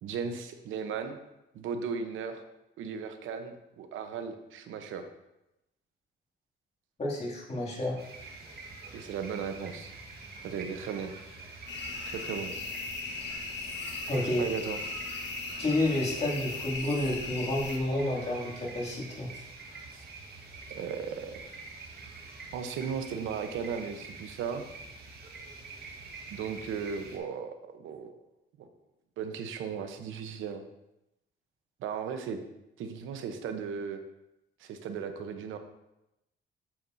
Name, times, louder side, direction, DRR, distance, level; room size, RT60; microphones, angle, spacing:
voice 1, 0.0-1.2 1.5-2.4 2.8-5.0 8.9-9.9 10.4-11.1 12.0-12.5 14.4-15.0 19.9-20.0 20.7-21.4 22.5-24.6 26.3-28.1 28.6-28.7 29.2-30.6 31.8-32.4 32.8-34.0 34.6-35.6, right 6 dB, 80° right, 7 dB, 0.9 m, -36 dB
voice 2, 7.0-8.0 14.1-14.5 15.6-19.4, left 1 dB, 35° left, -3 dB, 2.5 m, -30 dB
sound 1, 8.0-27.2, right 3 dB, 50° right, 1.8 m, -46 dB
sound 2, 11.7-17.8, left 3 dB, 60° left, 1.4 m, -38 dB
8.7 x 7.0 x 2.7 m, 0.91 s
cardioid pair, 90°, 20 cm